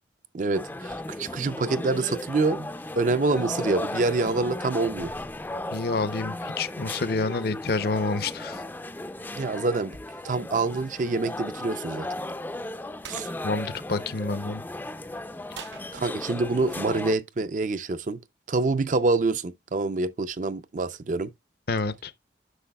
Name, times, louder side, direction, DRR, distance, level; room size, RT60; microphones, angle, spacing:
voice 1, 0.3-2.7 3.0-5.1 9.3-10.0 10.2-12.1 13.1-13.3 15.9-18.2 18.5-21.3, right 3 dB, 45° right, 0.5 m, -26 dB
sound 1, 0.5-17.1, left 1 dB, 10° left, 0.4 m, -36 dB
voice 2, 5.7-8.6 13.4-14.6 21.7-22.1, left 3 dB, 60° left, 0.6 m, -28 dB
sound 2, 13.0-13.3 15.5-16.5, right 7 dB, 85° right, 0.9 m, -44 dB
9.8 x 6.2 x 2.3 m
head